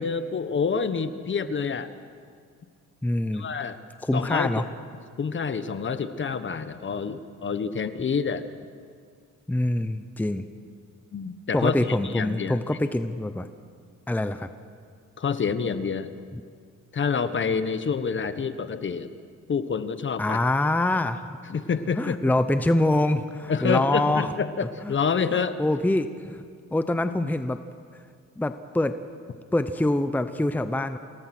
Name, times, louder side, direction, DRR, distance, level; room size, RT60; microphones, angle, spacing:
voice 1, 0.0-1.9 3.3-3.8 4.1-4.6 5.2-8.5 11.1-12.6 15.2-16.1 16.9-19.1 19.5-20.4 21.5-22.2 23.5-25.6, left 5 dB, 40° left, 11 dB, 1.3 m, -27 dB
voice 2, 3.0-3.5 4.0-4.6 9.5-10.5 11.5-13.5 14.1-14.5 16.3-16.4 20.2-21.4 22.0-24.3 24.8-25.0 25.6-26.4 26.7-27.6 28.4-29.0 29.5-31.0, left 1 dB, 5° left, 10 dB, 0.8 m, -25 dB
27.0 x 18.5 x 6.2 m, 2.1 s
cardioid pair, 90°, 30 cm